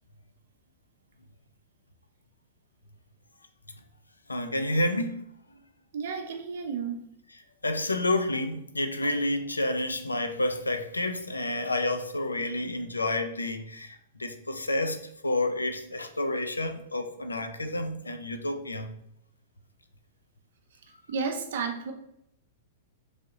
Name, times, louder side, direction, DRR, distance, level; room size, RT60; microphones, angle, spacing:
voice 1, 4.3-5.2 5.5-5.6 7.6-18.9, left 1 dB, 90° left, 7 dB, 0.4 m, -29 dB
voice 2, 5.9-7.0 21.1-21.9, right 5 dB, 60° right, 5 dB, 0.6 m, -32 dB
3.2 x 2.5 x 2.6 m, 0.74 s
figure-of-eight pair, 105°, 0 cm